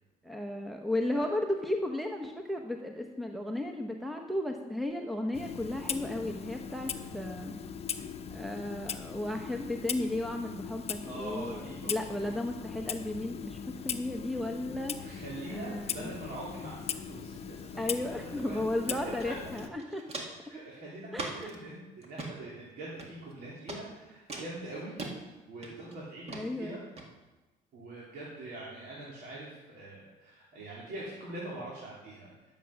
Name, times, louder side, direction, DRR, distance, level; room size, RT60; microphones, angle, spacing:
voice 1, 0.2-7.5 8.0-16.1 17.8-20.0 21.1-21.5 26.3-26.7, left 1 dB, ahead, 3 dB, 0.8 m, -34 dB
Clock, 5.3-19.7, left 7 dB, 35° left, 0.8 m, -40 dB
voice 2, 11.0-11.9 12.2-12.3 15.0-17.8 18.4-18.6 18.9-19.3 20.5-24.9 25.5-26.8 27.7-32.3, right 2 dB, 70° right, -6 dB, 3.0 m, -43 dB
Walk footsteps, 19.2-19.3 19.6-20.5 21.1-21.6 22.0-22.3 23.0-23.3 23.7-23.8 24.3-25.1 25.6-25.9 26.3-26.4 27.0-27.1, right 2 dB, 40° right, 1.8 m, -40 dB
11.0 x 7.2 x 6.3 m, 1.1 s
cardioid pair, 110°, 17 cm